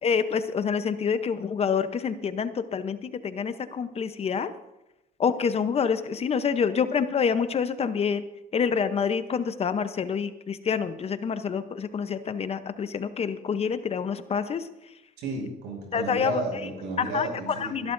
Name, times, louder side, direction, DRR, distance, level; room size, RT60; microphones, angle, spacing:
voice 1, 0.0-4.5 5.2-8.2 8.5-14.7 15.9-16.4 17.0-17.3 17.7-17.9, left 6 dB, 35° left, 11 dB, 0.8 m, -27 dB
voice 2, 15.2-17.9, right 3 dB, 90° right, 0 dB, 5.9 m, -33 dB
25.5 x 11.5 x 2.6 m, 0.93 s
cardioid pair, 110°, 17 cm